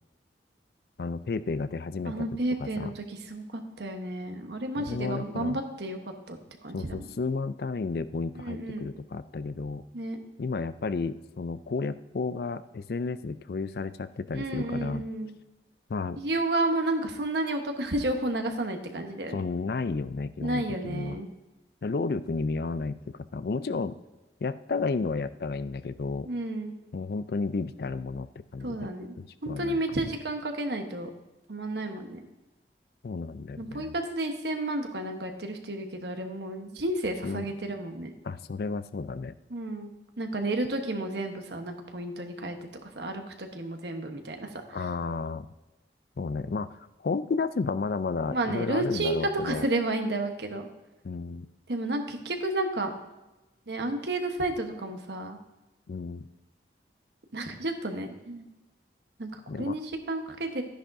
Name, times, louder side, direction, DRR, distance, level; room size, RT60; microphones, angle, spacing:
voice 1, 1.0-2.3 2.6-2.9 4.8-5.6 6.7-9.8 10.4-15.1 15.9-16.2 19.3-21.2 21.8-24.0 24.4-26.3 26.9-28.3 28.5-28.9 29.2-29.8 33.0-33.9 37.2-37.5 38.2-39.3 44.7-45.5 46.2-46.7 47.0-49.7 51.0-51.5 55.9-56.2 59.5-59.8, left 4 dB, 60° left, 14 dB, 0.4 m, -32 dB
voice 2, 2.0-7.1 8.4-8.9 9.9-10.2 14.3-15.3 16.2-19.4 20.4-21.3 26.2-26.7 28.6-29.1 29.4-31.1 31.5-32.2 33.6-38.1 39.5-39.9 40.2-42.7 42.9-44.8 48.3-50.7 51.7-52.9 53.7-55.4 57.3-58.5 59.2-60.6, right 2 dB, 75° right, 5 dB, 1.1 m, -31 dB
12.5 x 10.0 x 2.7 m, 1.0 s
head